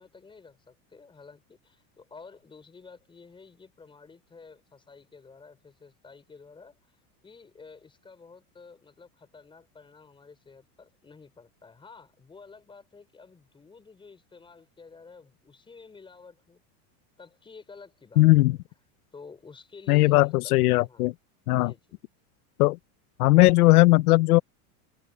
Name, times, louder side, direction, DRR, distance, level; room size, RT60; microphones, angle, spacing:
voice 1, 0.0-7.0 7.2-16.6 17.2-18.6 19.1-20.5 20.9-21.1 21.6-22.0, left 4 dB, 10° left, 5.8 m, -51 dB
voice 2, 18.2-18.6 19.9-21.1 21.5-21.7 22.6-22.8 23.2-24.4, left 19 dB, 90° left, 0.8 m, -18 dB
supercardioid pair, 165°, 43 cm